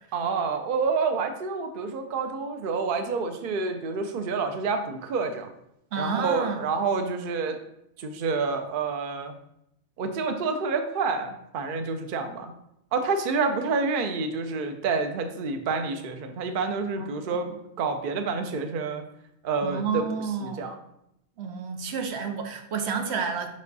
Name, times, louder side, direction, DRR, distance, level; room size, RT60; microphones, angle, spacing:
voice 1, 0.1-5.5 6.0-7.6 8.0-9.3 10.0-12.5 12.9-17.5 17.8-19.0 19.4-20.0 20.4-20.7, right 4 dB, 60° right, 7 dB, 0.8 m, -28 dB
voice 2, 5.9-6.7 16.9-17.4 19.6-20.7 21.4-23.5, right 5 dB, 85° right, 5 dB, 1.0 m, -30 dB
5.3 x 5.2 x 4.0 m, 0.79 s
omnidirectional pair, 1.1 m